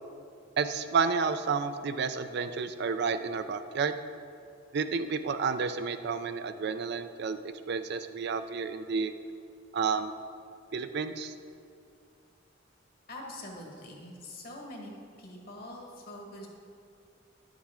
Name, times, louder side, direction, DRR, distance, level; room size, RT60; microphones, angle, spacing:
voice 1, 0.6-4.0 4.7-9.1 9.7-10.1 10.7-11.3, right 5 dB, 60° right, 10 dB, 0.4 m, -31 dB
voice 2, 13.1-14.9 15.2-16.5, left 1 dB, 50° left, 0 dB, 1.5 m, -44 dB
10.5 x 7.3 x 3.7 m, 2.5 s
head